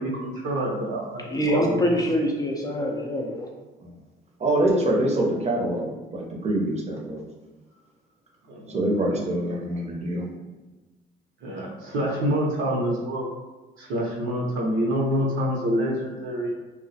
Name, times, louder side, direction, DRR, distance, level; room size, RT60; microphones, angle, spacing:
voice 1, 0.0-1.9 8.5-8.8 9.1-9.2 11.4-13.3 13.8-16.5, equal, 70° right, -2 dB, 0.7 m, -27 dB
voice 2, 1.3-3.5, equal, 20° left, -1 dB, 0.4 m, -24 dB
voice 3, 4.4-7.3 8.7-10.3, right 1 dB, 30° right, -1 dB, 0.6 m, -25 dB
2.2 x 2.1 x 2.7 m, 1.2 s
supercardioid pair, 70°, 21 cm